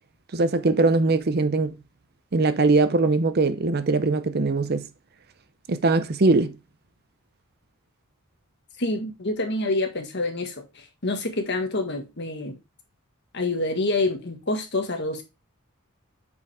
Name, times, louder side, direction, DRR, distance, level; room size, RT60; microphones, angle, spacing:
voice 1, 0.3-1.8 2.3-4.9 5.7-6.6, right 3 dB, 45° right, 0.6 m, -21 dB
voice 2, 8.8-12.6 13.3-15.2, left 2 dB, 50° left, 1.6 m, -27 dB
8.3 x 5.1 x 3.4 m
head